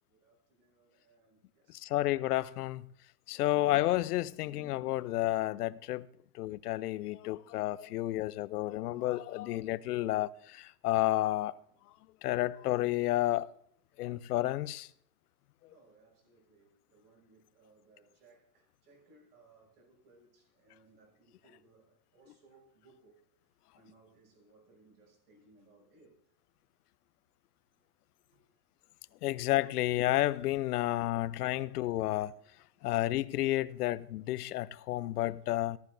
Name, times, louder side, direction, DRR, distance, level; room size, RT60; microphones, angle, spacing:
voice 1, 0.1-2.0 4.6-4.9 8.0-8.3 15.7-23.2 23.7-26.2 28.2-28.6 29.1-29.2 31.6-31.7 32.7-32.9, right 3 dB, 85° right, 6.0 m, -64 dB
voice 2, 1.7-2.9 3.3-6.1 6.3-11.5 12.2-13.5 14.0-14.9 29.2-32.3 32.8-35.8, left 16 dB, 80° left, 0.6 m, -31 dB
14.0 x 13.0 x 2.6 m
supercardioid pair, 175°, 45 cm